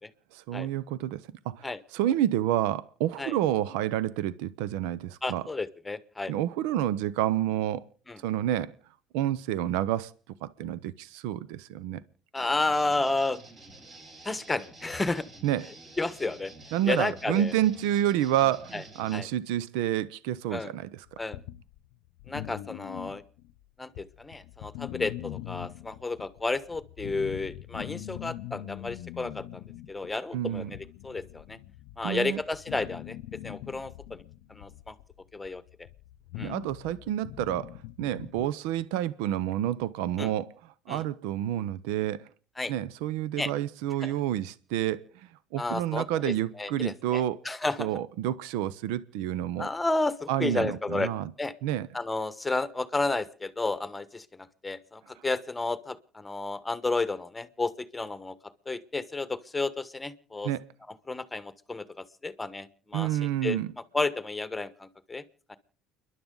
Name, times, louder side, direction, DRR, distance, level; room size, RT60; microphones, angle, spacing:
voice 1, 0.3-5.5 6.3-7.8 8.2-8.7 9.1-10.1 10.4-12.0 15.4-15.7 16.7-21.2 30.3-30.7 32.0-32.4 36.4-40.5 40.9-42.3 42.7-47.4 47.8-49.7 50.3-51.3 51.6-51.9 55.2-55.3 60.4-60.7 62.9-63.7, right 12 dB, 80° right, 0.6 m, -29 dB
voice 2, 5.2-6.3 8.1-8.2 12.3-13.4 14.2-15.3 16.0-16.5 16.9-17.5 18.7-18.8 19.1-19.3 20.5-20.7 21.2-21.4 22.3-23.2 23.8-29.6 29.9-30.8 31.0-31.6 32.0-33.2 33.4-34.2 34.5-34.9 35.3-35.6 36.4-36.5 40.2-40.3 40.9-41.0 42.6-42.7 43.4-43.5 44.0-44.1 45.6-47.9 49.6-51.1 51.4-51.5 51.9-58.3 58.7-60.5 61.1-63.1 63.4-63.6 63.9-65.2 65.5-65.6, left 3 dB, 15° left, 1.2 m, -32 dB
sound 1, 12.4-19.2, right 2 dB, 40° right, 7.4 m, -49 dB
sound 2, 21.1-23.6 23.9-38.5, left 14 dB, 75° left, 0.6 m, -42 dB
30.0 x 11.0 x 3.9 m
supercardioid pair, 80°, 0 cm